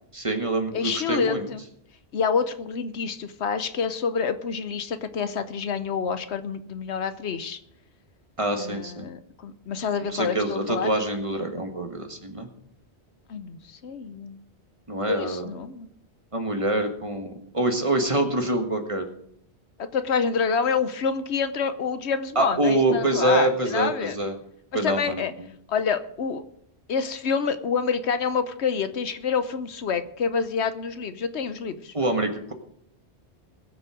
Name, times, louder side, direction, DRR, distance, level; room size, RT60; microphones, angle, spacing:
voice 1, 0.1-1.5 8.4-9.1 10.0-12.5 14.9-15.5 16.3-19.1 22.3-24.3 24.7-25.3 31.9-32.5, right 2 dB, 30° right, 4 dB, 1.7 m, -25 dB
voice 2, 0.7-1.6 2.1-7.6 8.6-10.9 13.3-14.4 15.1-15.9 19.8-24.2 24.8-25.3 25.7-26.4 26.9-31.9, left 6 dB, 80° left, 11 dB, 1.1 m, -27 dB
21.0 x 7.3 x 4.9 m, 0.69 s
omnidirectional pair, 1.1 m